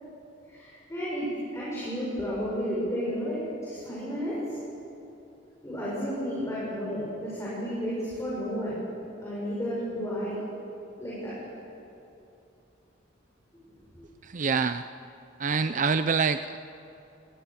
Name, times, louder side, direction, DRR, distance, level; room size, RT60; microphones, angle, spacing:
voice 1, 0.5-4.4 5.6-8.8 9.2-10.4 11.0-11.3 13.9-14.0, equal, 15° left, -8 dB, 7.1 m, -32 dB
voice 2, 14.2-14.8 15.4-16.6, right 5 dB, 45° right, 11 dB, 0.6 m, -26 dB
28.0 x 19.0 x 7.2 m, 2.8 s
head